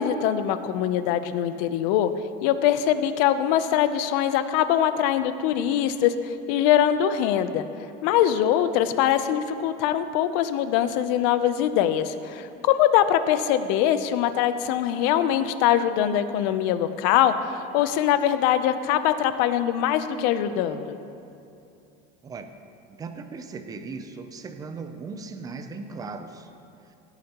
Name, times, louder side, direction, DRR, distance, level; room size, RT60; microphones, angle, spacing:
voice 1, 0.0-2.1 2.4-6.1 6.5-7.6 8.0-20.9, left 10 dB, 65° left, 11 dB, 0.6 m, -23 dB
voice 2, 23.0-26.5, right 4 dB, 15° right, 8 dB, 0.5 m, -37 dB
17.0 x 8.9 x 2.9 m, 2.6 s
cardioid pair, 160°, 21 cm